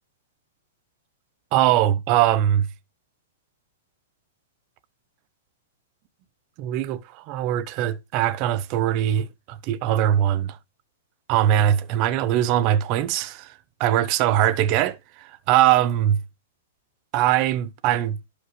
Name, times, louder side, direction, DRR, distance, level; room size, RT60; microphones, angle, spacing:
voice 1, 1.5-2.7 6.6-10.6 11.3-13.5 13.8-16.2 17.1-18.2, right 11 dB, 35° right, 0.8 m, -21 dB
11.5 x 5.0 x 3.2 m
hypercardioid pair, 155°, 0 cm